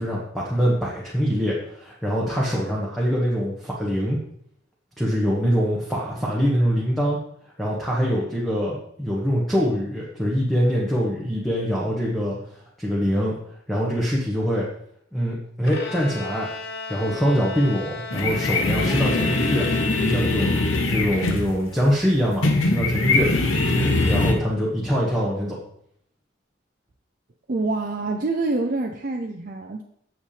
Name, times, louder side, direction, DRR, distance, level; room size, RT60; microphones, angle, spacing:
voice 1, 0.0-4.2 5.0-7.2 7.6-12.4 12.8-13.3 13.7-14.7 15.1-16.5 16.9-19.7 20.0-20.5 20.8-23.3 23.7-25.6, equal, ahead, -5 dB, 1.2 m, -23 dB
Bowed string instrument, 15.7-20.4, left 3 dB, 55° left, 1.0 m, -35 dB
sound 1, 18.1-24.3, left 2 dB, 90° left, 1.1 m, -22 dB
voice 2, 27.5-29.8, right 3 dB, 45° right, 2 dB, 0.5 m, -26 dB
8.2 x 7.1 x 3.3 m, 0.70 s
head